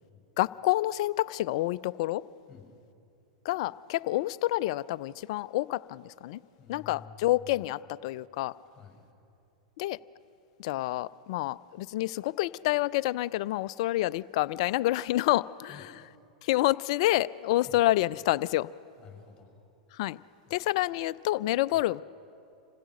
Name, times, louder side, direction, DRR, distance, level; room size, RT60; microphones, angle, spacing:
voice 1, 0.4-2.2 3.4-6.4 6.7-8.5 9.8-10.0 10.6-15.7 16.4-18.7 20.0-20.2 20.5-22.0, left 16 dB, 55° left, 17 dB, 0.4 m, -28 dB
voice 2, 6.6-7.7 8.7-9.0 15.7-16.1 17.6-17.8 19.0-19.5 20.5-20.6 21.7-21.8, left 7 dB, 15° left, 1 dB, 6.7 m, -51 dB
26.5 x 16.0 x 6.3 m, 2.6 s
hypercardioid pair, 100°, 4 cm